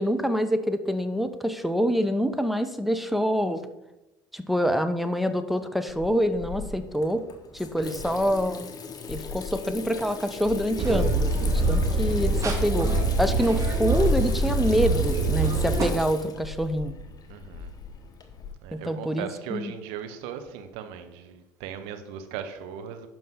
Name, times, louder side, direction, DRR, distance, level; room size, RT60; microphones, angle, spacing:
voice 1, 0.0-3.6 4.3-7.2 7.5-8.7 9.1-16.9 18.7-19.7, equal, ahead, 10 dB, 0.7 m, -26 dB
Water tap faucet / Sink (filling or washing), 5.9-18.5, left 6 dB, 35° left, 1.1 m, -39 dB
voice 2, 7.8-8.2 12.4-12.6 12.9-13.2 17.3-17.7 18.6-23.1, right 8 dB, 65° right, 7 dB, 1.0 m, -38 dB
sound 1, 10.8-15.9, right 2 dB, 30° right, 1.9 m, -24 dB
11.0 x 5.3 x 3.7 m, 0.97 s
figure-of-eight pair, 60°, 11 cm